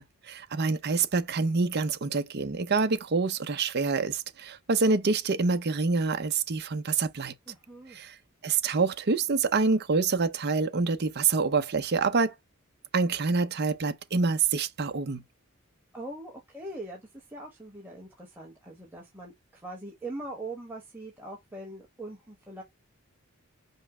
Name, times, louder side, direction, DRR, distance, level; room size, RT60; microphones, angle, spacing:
voice 1, 0.0-7.3 7.9-8.1 8.4-12.3 12.9-15.2, right 4 dB, 50° right, 0.7 m, -26 dB
voice 2, 7.5-8.0 15.9-22.6, right 2 dB, 10° right, 1.2 m, -42 dB
5.5 x 2.0 x 4.8 m
head